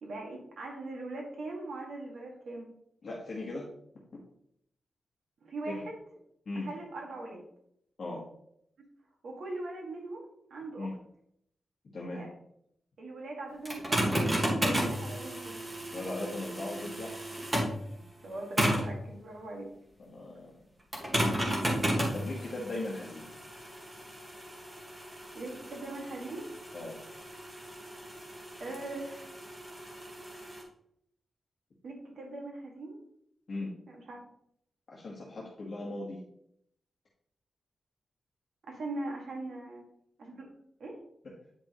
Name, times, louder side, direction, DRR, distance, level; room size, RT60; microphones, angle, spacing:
voice 1, 0.0-2.7 5.4-6.0 6.5-7.4 9.2-10.2 10.5-11.0 12.0-12.3 13.0-14.1 14.5-15.6 18.2-19.7 21.2-21.4 25.3-26.5 28.6-29.3 31.8-33.0 33.9-34.2 38.7-39.8 40.2-40.5 40.8-41.0, right 2 dB, 75° right, 0 dB, 1.7 m, -40 dB
voice 2, 3.0-3.7 5.7-5.8 6.5-6.7 8.0-8.2 10.8-10.9 11.9-12.2 15.9-17.1 20.0-20.5 21.1-21.3 22.1-23.2 26.7-27.0 33.5-33.7 34.9-36.2, left 2 dB, 45° left, -4 dB, 1.3 m, -38 dB
sound 1, 13.7-17.8 18.6-19.0 20.9-30.6, equal, 20° right, 1.6 m, -33 dB
8.9 x 5.3 x 3.0 m, 0.72 s
wide cardioid pair, 175°, 0 cm